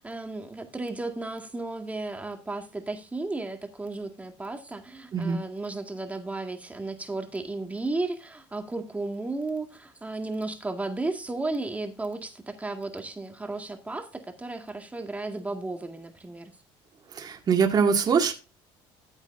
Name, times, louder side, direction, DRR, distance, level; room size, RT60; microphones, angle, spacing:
voice 1, 0.0-16.5, right 2 dB, 15° right, 2.0 m, -34 dB
voice 2, 17.1-18.3, right 6 dB, 40° right, 2.2 m, -23 dB
14.0 x 8.2 x 2.7 m
supercardioid pair, 100°, 11 cm